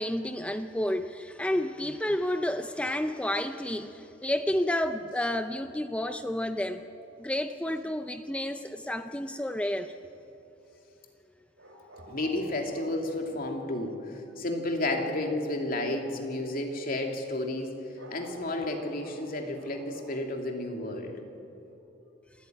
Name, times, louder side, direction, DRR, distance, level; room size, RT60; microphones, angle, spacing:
voice 1, 0.0-6.8 7.2-9.9, left 1 dB, 5° left, 8 dB, 0.5 m, -30 dB
sound 1, 11.6-13.3 17.9-20.3 21.7-21.8, right 1 dB, 80° right, 5.7 m, -49 dB
voice 2, 12.1-17.7 18.1-21.2, left 1 dB, 50° left, 2 dB, 2.8 m, -32 dB
27.0 x 14.5 x 9.3 m, 2.9 s
head